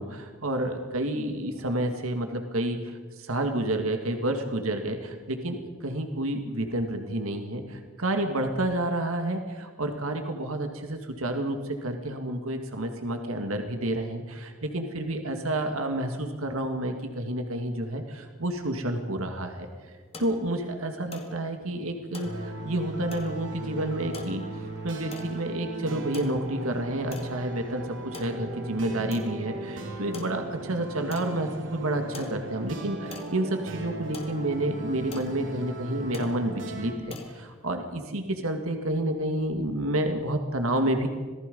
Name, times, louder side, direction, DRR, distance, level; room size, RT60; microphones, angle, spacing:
voice 1, 0.0-19.7 20.2-24.4 24.8-41.1, right 1 dB, 80° right, 5 dB, 1.9 m, -30 dB
sound 1, 19.4-38.1, left 2 dB, 25° left, 2.0 m, -47 dB
sound 2, 22.2-36.9, right 2 dB, 60° right, 2.8 m, -38 dB
27.0 x 18.5 x 5.4 m, 1.5 s
head